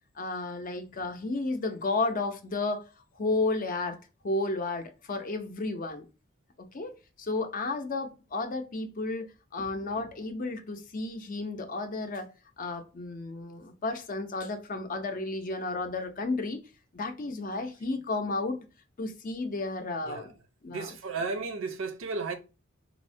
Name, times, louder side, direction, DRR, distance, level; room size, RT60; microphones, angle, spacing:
voice 1, 0.2-2.8 3.2-4.0 4.2-6.1 6.6-16.6 16.9-18.7 19.0-20.3 20.6-21.0, left 3 dB, 40° left, 0.5 m, -32 dB
voice 2, 20.7-22.3, right 4 dB, 75° right, 0.6 m, -34 dB
4.2 x 2.1 x 2.5 m
head